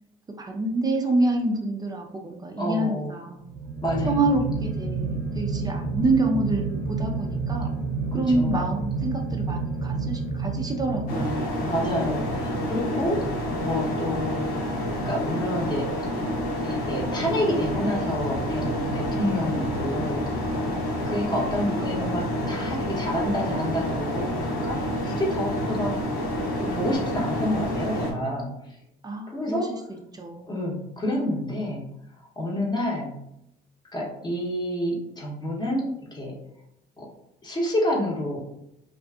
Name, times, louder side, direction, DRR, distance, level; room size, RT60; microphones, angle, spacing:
voice 1, 0.4-3.4 4.1-7.7 8.1-11.6 29.0-29.6 29.9-30.5, right 2 dB, 25° right, 2 dB, 0.3 m, -27 dB
voice 2, 2.6-3.2 3.8-4.3 8.1-8.7 11.6-15.9 16.6-20.3 21.0-25.9 26.5-28.5 29.3-29.7 30.5-31.8 32.4-33.1 33.9-36.3 37.0-37.1 37.4-38.4, left 1 dB, 25° left, -2 dB, 0.7 m, -29 dB
sound 1, 3.4-11.8, right 4 dB, 80° right, 0.7 m, -29 dB
sound 2, 11.1-28.1, equal, 65° left, 0.7 m, -28 dB
2.5 x 2.4 x 2.3 m, 0.81 s
cardioid pair, 110°, 17 cm